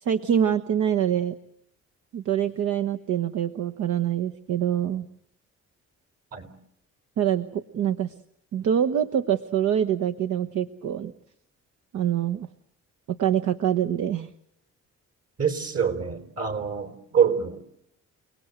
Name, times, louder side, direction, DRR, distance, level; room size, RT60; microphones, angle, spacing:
voice 1, 0.0-1.3 2.1-5.1 7.2-8.1 8.5-11.1 11.9-12.5 13.1-14.3, right 9 dB, 70° right, 7 dB, 1.2 m, -25 dB
voice 2, 15.4-17.6, right 7 dB, 50° right, 9 dB, 4.4 m, -25 dB
29.5 x 19.0 x 8.1 m, 0.76 s
cardioid pair, 90°, 30 cm